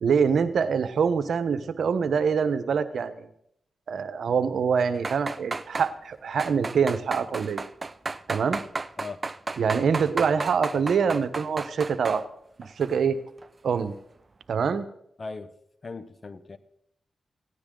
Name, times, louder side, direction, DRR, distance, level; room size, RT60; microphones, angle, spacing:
voice 1, 0.0-3.3 3.9-7.6 8.3-8.6 9.6-12.2 12.6-13.2 13.6-13.9 14.5-14.9, right 6 dB, 80° right, 10 dB, 1.1 m, -25 dB
sound 1, 5.0-5.9 6.4-12.2 12.6-13.0 13.4-13.5, right 3 dB, 40° right, 0.7 m, -33 dB
voice 2, 15.2-15.5 15.8-16.6, left 4 dB, 50° left, 12 dB, 1.3 m, -38 dB
17.5 x 16.5 x 3.9 m, 0.74 s
cardioid pair, 55°, 0 cm